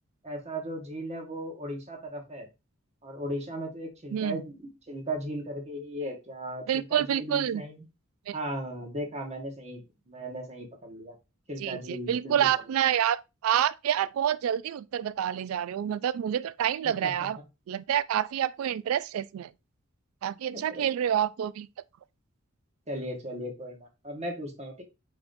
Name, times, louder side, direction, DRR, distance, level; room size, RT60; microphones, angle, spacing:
voice 1, 0.2-2.5 3.0-7.8 8.3-11.1 11.5-12.6 16.8-17.1 20.5-20.9 22.9-24.8, right 1 dB, 30° right, 1.2 m, -37 dB
voice 2, 4.1-4.4 6.7-7.6 8.3-8.4 11.6-17.4 17.7-19.5 20.2-21.7, right 10 dB, 80° right, 0.3 m, -28 dB
4.7 x 3.7 x 2.6 m
head